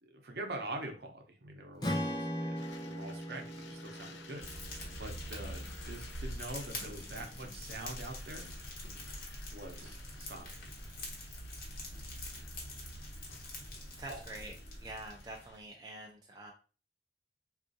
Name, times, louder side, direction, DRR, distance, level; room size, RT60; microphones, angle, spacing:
voice 1, 0.0-4.5 5.0-8.5 9.5-10.7 14.1-14.2, right 2 dB, 65° right, 3 dB, 0.7 m, -44 dB
Strum, 1.8-6.1, equal, 25° left, 0.6 m, -39 dB
sound 1, 2.6-15.6, left 4 dB, 85° left, 0.5 m, -55 dB
Fire, 4.4-15.6, left 1 dB, 55° left, 1.0 m, -44 dB
voice 2, 14.0-16.5, right 1 dB, 25° right, 1 dB, 0.4 m, -46 dB
3.6 x 2.4 x 2.6 m, 0.34 s
head